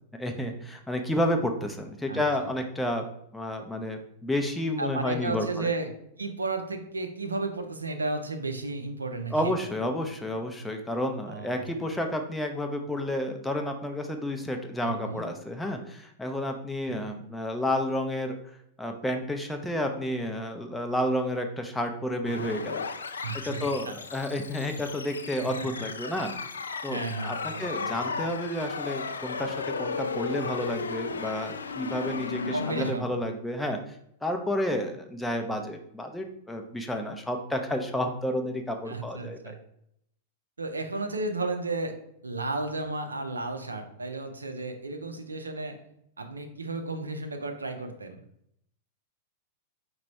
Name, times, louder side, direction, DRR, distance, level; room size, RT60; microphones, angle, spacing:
voice 1, 0.2-3.0 3.3-5.7 9.3-18.4 18.8-22.8 23.4-26.3 26.8-33.8 34.2-39.6, left 1 dB, 5° left, 4 dB, 0.6 m, -31 dB
voice 2, 4.8-5.9 6.2-9.5 11.3-11.9 14.8-15.3 16.9-17.0 23.2-23.9 25.4-26.1 26.9-27.9 32.5-33.1 38.9-39.6 40.6-42.0 42.2-45.8 46.2-48.2, right 2 dB, 75° right, 5 dB, 0.6 m, -33 dB
sound 1, 22.2-32.9, left 4 dB, 70° left, 0.3 m, -35 dB
4.9 x 2.3 x 4.2 m, 0.73 s
figure-of-eight pair, 95°, 0 cm